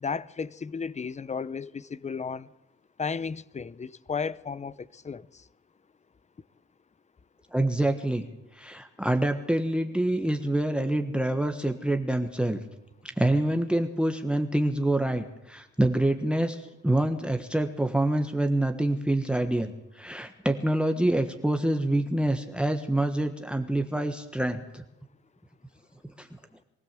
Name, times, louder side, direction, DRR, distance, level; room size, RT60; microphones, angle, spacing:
voice 1, 0.0-2.5 3.0-5.3, left 5 dB, 25° left, 0.7 m, -34 dB
voice 2, 7.5-8.2 8.6-12.6 13.2-24.8 26.0-26.3, right 1 dB, 5° right, 1.4 m, -26 dB
23.0 x 15.5 x 7.6 m
cardioid pair, 90°, 30 cm